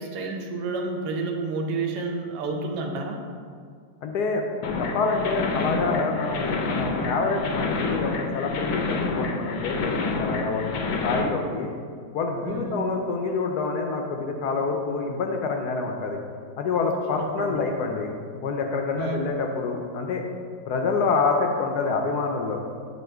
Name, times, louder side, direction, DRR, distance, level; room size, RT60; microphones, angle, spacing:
voice 1, 0.0-3.2 12.4-12.8 17.1-17.6 19.0-19.2, right 3 dB, 65° right, 2 dB, 1.2 m, -30 dB
voice 2, 4.0-4.4 4.8-11.7 12.1-16.2 16.6-18.1 18.4-20.2 20.7-22.6, left 4 dB, 70° left, 3 dB, 1.0 m, -27 dB
sound 1, 4.6-11.2, left 3 dB, 90° left, 1.4 m, -28 dB
7.7 x 3.0 x 4.4 m, 2.1 s
omnidirectional pair, 2.0 m